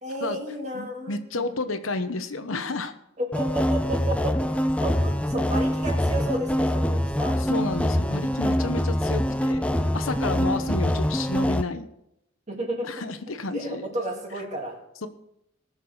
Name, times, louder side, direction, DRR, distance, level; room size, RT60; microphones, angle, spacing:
voice 1, 0.0-1.6 3.2-7.4 12.5-12.9 13.5-14.8, right 1 dB, 35° right, 0 dB, 2.7 m, -32 dB
voice 2, 0.7-2.9 7.5-9.6 9.9-11.9 12.8-13.9, left 3 dB, 90° left, 9 dB, 1.0 m, -31 dB
sound 1, 3.3-11.6, equal, 5° left, 0.4 m, -24 dB
18.5 x 6.8 x 4.8 m, 0.80 s
head